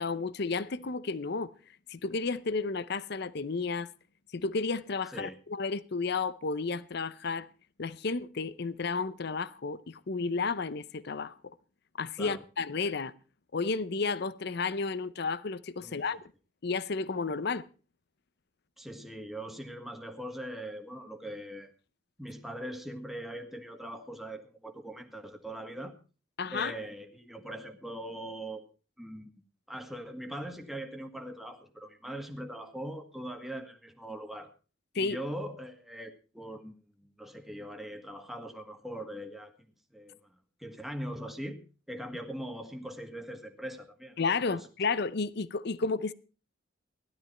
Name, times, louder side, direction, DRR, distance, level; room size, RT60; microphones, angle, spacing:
voice 1, 0.0-1.5 1.9-3.9 4.3-7.5 7.8-11.5 12.0-13.1 13.5-16.2 16.6-17.6 26.4-26.7 34.9-35.2 44.2-46.1, left 4 dB, 60° left, 0.7 m, -32 dB
voice 2, 18.8-21.7 22.2-25.9 26.5-28.6 29.0-29.3 29.7-34.5 34.9-39.5 39.9-40.2 40.6-41.6 41.9-44.2 44.5-44.6, right 1 dB, ahead, 1.7 m, -41 dB
16.5 x 12.0 x 4.3 m
head